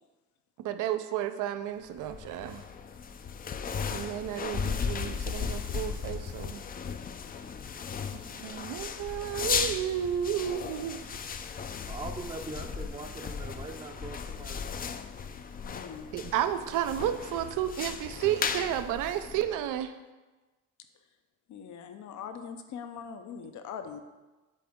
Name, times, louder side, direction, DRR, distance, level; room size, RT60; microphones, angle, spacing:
voice 1, 0.6-2.6 3.9-6.6 8.3-11.2 16.1-19.9, right 11 dB, 85° right, 10 dB, 0.5 m, -32 dB
sound 1, 1.9-19.8, left 6 dB, 30° left, 0.4 m, -36 dB
voice 2, 11.9-14.8, right 3 dB, 20° right, 0 dB, 0.6 m, -42 dB
voice 3, 15.6-16.1 21.5-24.0, left 7 dB, 70° left, 8 dB, 0.7 m, -42 dB
8.3 x 3.7 x 3.6 m, 1.2 s
cardioid pair, 90°, 30 cm